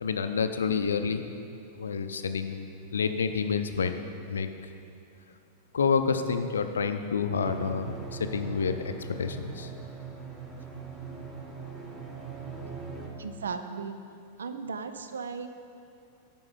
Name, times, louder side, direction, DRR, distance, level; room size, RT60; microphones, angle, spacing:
voice 1, 0.0-1.3 1.8-4.0 4.3-4.5 5.7-9.7, left 5 dB, 70° left, 8 dB, 0.5 m, -29 dB
sound 1, 7.4-13.1, right 5 dB, 10° right, 1.4 m, -41 dB
voice 2, 13.2-14.0 14.4-15.5, right 5 dB, 70° right, 9 dB, 0.5 m, -36 dB
9.5 x 5.3 x 5.4 m, 2.5 s
figure-of-eight pair, 90°, 0 cm